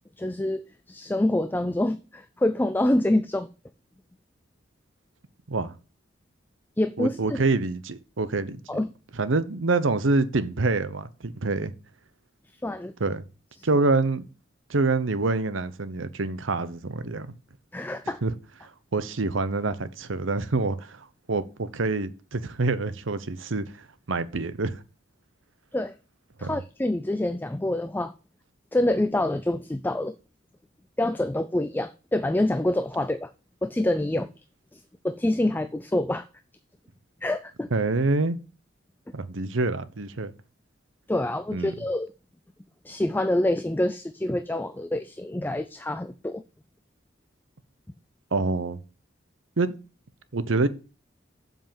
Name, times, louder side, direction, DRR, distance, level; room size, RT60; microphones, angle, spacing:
voice 1, 0.2-3.5 6.8-7.4 8.7-8.9 12.6-12.9 17.7-18.2 25.7-25.9 26.4-28.1 28.7-30.2 31.0-33.3 33.6-34.3 34.7-36.3 37.2-37.7 41.1-42.1 42.8-46.4, left 1 dB, 10° left, 0.3 m, -26 dB
voice 2, 7.0-8.6 9.2-11.7 13.0-13.3 13.6-14.2 14.7-17.4 18.2-18.3 18.6-23.6 24.1-24.8 26.4-26.6 37.7-38.4 39.1-40.3 41.5-41.7 48.3-48.8 49.6-49.7 50.3-50.7, right 3 dB, 90° right, 0.9 m, -26 dB
7.5 x 5.4 x 7.2 m
head